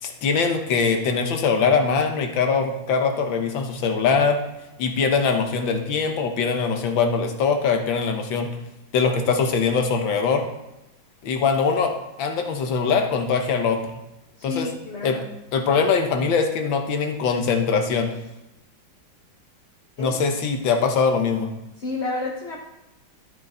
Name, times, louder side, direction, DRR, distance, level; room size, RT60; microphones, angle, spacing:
voice 1, 0.0-4.4 4.8-8.5 8.9-10.4 11.2-11.9 12.2-13.8 14.4-14.7 15.0-15.2 15.5-18.1 20.0-21.5, left 5 dB, 70° left, 5 dB, 1.8 m, -22 dB
voice 2, 14.4-15.3 20.0-20.2 21.8-22.6, left 3 dB, 40° left, -2 dB, 1.1 m, -30 dB
12.5 x 6.9 x 4.3 m, 0.93 s
omnidirectional pair, 2.2 m